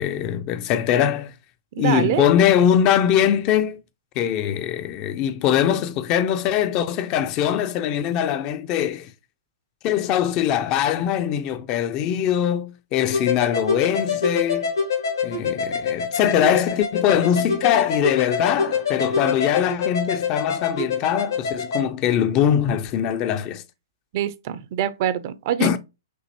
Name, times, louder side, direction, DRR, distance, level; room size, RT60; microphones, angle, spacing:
voice 1, 0.0-1.3 1.8-3.8 4.2-9.1 9.8-14.7 15.2-23.6 25.6-25.8, left 9 dB, 35° left, 0.5 m, -22 dB
voice 2, 1.8-2.3 24.1-25.8, right 10 dB, 45° right, 0.5 m, -25 dB
sound 1, 13.1-21.8, left 5 dB, 75° left, 1.5 m, -25 dB
6.1 x 2.6 x 2.8 m
figure-of-eight pair, 115°, 2 cm